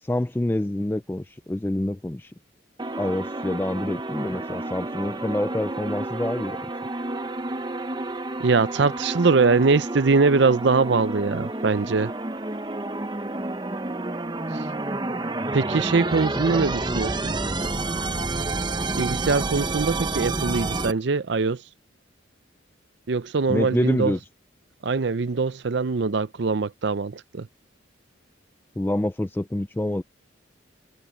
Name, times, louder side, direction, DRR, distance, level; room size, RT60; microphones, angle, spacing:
voice 1, 0.0-2.3 3.0-6.7 16.3-16.6 23.5-24.2 28.8-30.0, left 1 dB, 10° left, 0.3 m, -27 dB
sound 1, 2.8-20.9, right 2 dB, 20° right, 0.8 m, -29 dB
voice 2, 8.4-12.1 15.5-17.4 19.0-21.6 23.1-24.1 24.8-27.5, right 4 dB, 65° right, 0.6 m, -22 dB
head